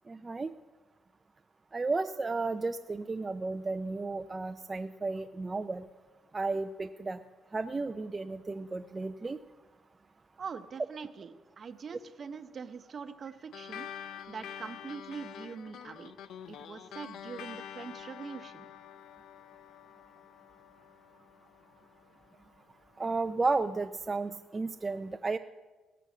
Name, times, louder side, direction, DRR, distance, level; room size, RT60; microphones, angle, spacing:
voice 1, 0.1-0.5 1.7-5.9 6.3-7.2 7.5-9.4 23.0-25.4, right 3 dB, 25° right, 6 dB, 0.4 m, -33 dB
voice 2, 10.4-13.9 14.3-16.1 16.5-18.7, right 6 dB, 45° right, 10 dB, 0.8 m, -43 dB
sound 1, 13.5-22.3, left 9 dB, 75° left, 0.4 m, -47 dB
17.5 x 6.8 x 6.1 m, 1.3 s
cardioid pair, 90°, 0 cm